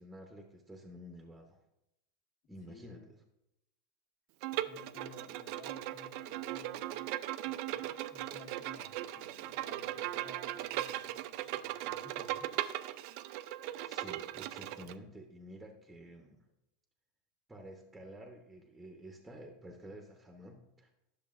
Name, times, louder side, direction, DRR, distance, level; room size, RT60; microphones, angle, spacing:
voice 1, 0.0-1.6 2.5-3.1 13.5-16.4 17.5-20.9, equal, 5° right, 2 dB, 0.9 m, -51 dB
voice 2, 2.7-3.1 4.5-7.1 7.4-12.5, left 3 dB, 55° left, 0 dB, 1.7 m, -56 dB
Bowed string instrument, 4.4-14.9, right 14 dB, 60° right, 0.3 m, -38 dB
10.5 x 6.6 x 2.5 m, 0.87 s
supercardioid pair, 125°, 0 cm